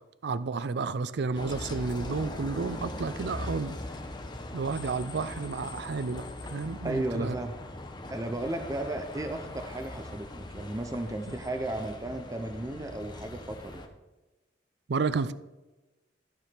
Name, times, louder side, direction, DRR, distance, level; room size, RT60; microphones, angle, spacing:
voice 1, 0.0-3.7 4.5-6.2 6.5-7.4 14.9-15.3, right 4 dB, 60° right, 15 dB, 0.4 m, -31 dB
Bus, 1.3-13.9, left 1 dB, 25° left, 0.9 m, -41 dB
voice 2, 6.8-7.5 8.1-13.8, right 1 dB, 20° right, 6 dB, 0.6 m, -34 dB
12.5 x 4.9 x 5.8 m, 1.1 s
head